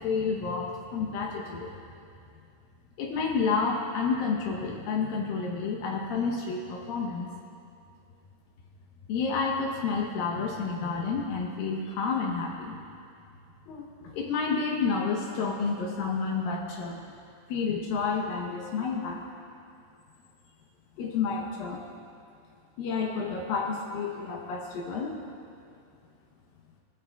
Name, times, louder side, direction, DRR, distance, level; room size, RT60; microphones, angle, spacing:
voice 1, 0.0-1.7 3.0-7.3 9.1-12.8 13.7-17.0 17.5-19.2 21.0-21.8 22.8-25.2, left 5 dB, 85° left, -1 dB, 2.0 m, -30 dB
20.0 x 15.0 x 2.3 m, 2.5 s
omnidirectional pair, 5.5 m